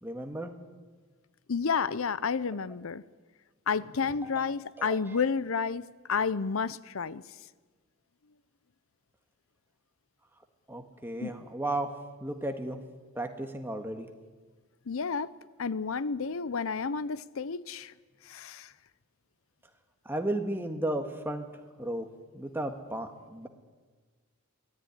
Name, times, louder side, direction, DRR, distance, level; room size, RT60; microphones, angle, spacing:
voice 1, 0.0-0.5 4.2-5.2 10.7-11.9 12.2-12.8 13.2-14.1 20.1-21.5 21.8-22.1 22.3-23.5, right 1 dB, 10° right, 5 dB, 1.7 m, -34 dB
voice 2, 1.5-3.0 3.7-7.2 11.2-11.4 14.9-15.3 15.6-17.9 18.3-18.7, left 5 dB, 70° left, 17 dB, 0.6 m, -31 dB
24.0 x 17.5 x 9.9 m, 1.4 s
head